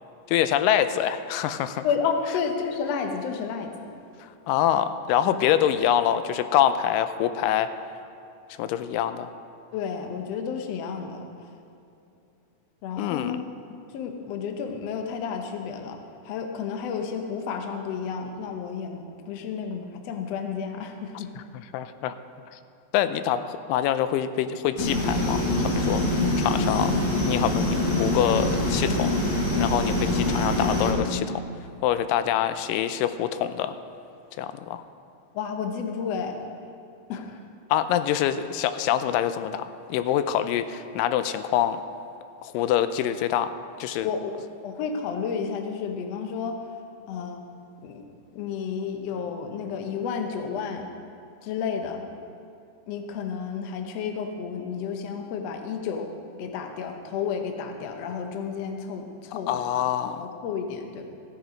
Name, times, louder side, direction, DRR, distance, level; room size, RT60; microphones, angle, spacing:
voice 1, 0.3-1.9 4.5-7.7 8.6-9.3 13.0-13.4 21.4-21.5 21.7-22.2 22.5-22.6 22.9-26.9 27.3-29.1 29.6-31.4 31.8-33.8 34.4-34.8 37.7-41.8 42.4-43.5 43.8-44.1 59.5-60.3, left 10 dB, 90° left, 11 dB, 2.2 m, -25 dB
voice 2, 1.8-3.7 5.4-5.5 9.7-11.3 12.8-13.4 13.9-16.0 16.2-21.3 35.3-36.4 37.1-37.4 44.0-44.4 44.6-46.6 47.1-47.4 47.8-48.0 48.3-50.9 51.4-52.0 52.9-59.6 60.1-61.1, left 6 dB, 65° left, 4 dB, 1.7 m, -31 dB
sound 1, 24.8-30.9, left 1 dB, 50° left, 3.0 m, -24 dB
15.5 x 8.1 x 5.1 m, 2.6 s
omnidirectional pair, 3.8 m